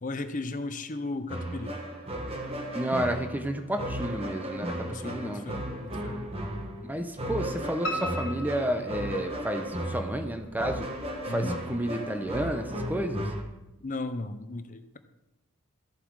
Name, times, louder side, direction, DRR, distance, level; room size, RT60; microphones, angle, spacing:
voice 1, 0.0-1.8 4.9-6.2 11.3-11.6 13.8-15.0, left 2 dB, 35° left, 10 dB, 0.7 m, -35 dB
sound 1, 1.3-13.4, right 1 dB, 25° right, 1.3 m, -35 dB
voice 2, 2.7-5.5 6.8-10.9 11.3-13.3, right 1 dB, 10° right, 6 dB, 0.8 m, -31 dB
Piano, 7.8-9.8 10.2-11.0 11.4-11.5 11.9-12.0 12.3-12.4, equal, 60° left, 1.6 m, -37 dB
14.0 x 7.5 x 4.8 m, 0.99 s
head